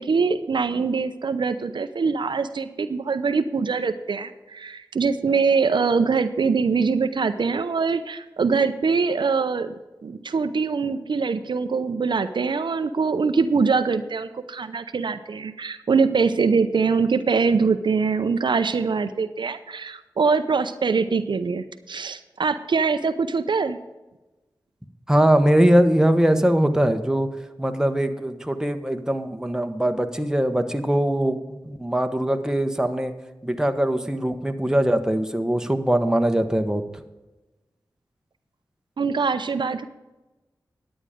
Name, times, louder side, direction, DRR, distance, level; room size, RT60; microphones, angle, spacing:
voice 1, 0.0-9.7 10.0-23.8 39.0-39.9, right 5 dB, 75° right, 10 dB, 0.6 m, -23 dB
voice 2, 25.1-27.3 27.6-33.1 33.4-36.8, right 1 dB, 10° right, 7 dB, 1.2 m, -21 dB
11.0 x 8.9 x 5.1 m, 1.1 s
cardioid pair, 40°, 8 cm